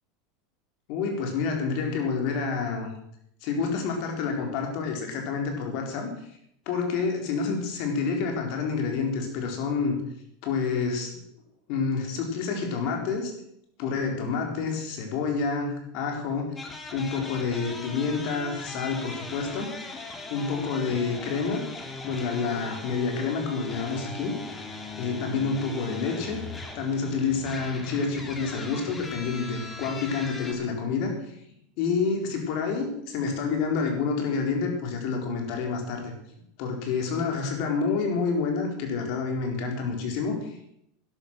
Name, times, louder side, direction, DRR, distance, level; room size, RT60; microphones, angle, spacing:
voice 1, 0.9-2.9 3.4-6.1 6.7-10.0 10.4-11.1 11.7-13.3 13.8-16.5 16.9-21.6 22.0-24.6 25.0-26.4 26.7-31.3 31.8-36.1 36.6-40.8, left 5 dB, 60° left, 3 dB, 4.3 m, -28 dB
sound 1, 16.6-30.5, left 3 dB, 20° left, 2.5 m, -39 dB
12.0 x 11.0 x 6.3 m, 0.73 s
supercardioid pair, 110°, 0 cm